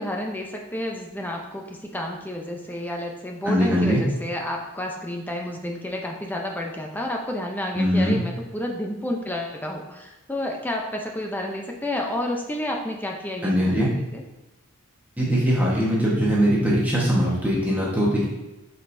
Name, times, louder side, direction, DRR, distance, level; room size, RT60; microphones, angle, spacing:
voice 1, 0.0-14.2, left 1 dB, 10° left, 1 dB, 0.6 m, -30 dB
voice 2, 3.4-4.0 7.7-8.2 13.4-13.9 15.2-18.2, equal, 5° right, -6 dB, 1.2 m, -21 dB
7.3 x 5.4 x 2.7 m, 1.0 s
head